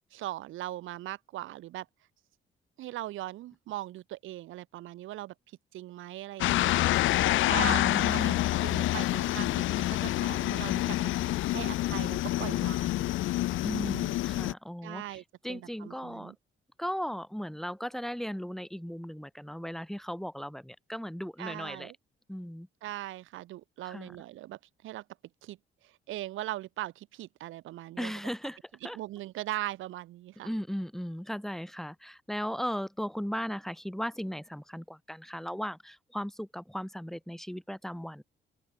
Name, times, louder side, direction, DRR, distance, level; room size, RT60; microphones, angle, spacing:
voice 1, 0.1-1.9 2.8-5.3 5.7-8.4 8.6-11.1 11.5-13.1 14.8-16.4 21.4-21.9 22.8-25.0 25.4-28.1 28.8-30.5, right 15 dB, 85° right, 1.8 m, -40 dB
sound 1, 6.4-14.5, left 15 dB, 80° left, 0.6 m, -27 dB
voice 2, 7.5-8.4 13.6-16.3 16.8-21.9 22.3-22.7 23.8-24.1 28.0-28.6 28.8-29.0 30.4-38.2, equal, ahead, 5.1 m, -37 dB
open air
cardioid pair, 90°, 20 cm